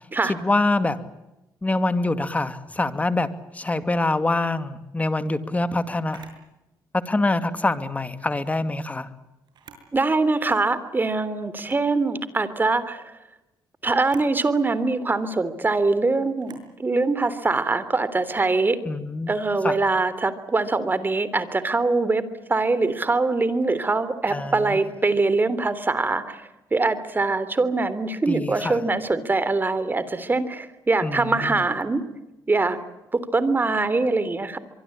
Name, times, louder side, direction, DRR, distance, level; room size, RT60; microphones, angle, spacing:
voice 1, 0.3-1.0 1.6-6.3 6.9-9.1 18.8-19.3 19.6-19.8 24.3-24.8 28.3-28.8 31.0-31.6, left 2 dB, 20° left, 11 dB, 2.4 m, -25 dB
Camera, 6.1-6.4 8.2-8.5 9.4-9.9 10.4-10.5 11.5-11.9 13.9-14.3 16.4-16.7, right 6 dB, 70° right, 6.7 m, -49 dB
voice 2, 9.9-13.0 13.8-18.8 19.3-22.2 22.5-26.4 26.7-32.0 32.5-32.8 33.1-34.6, right 3 dB, 25° right, 14 dB, 3.3 m, -23 dB
24.5 x 24.0 x 8.8 m, 0.98 s
cardioid pair, 85°, 8 cm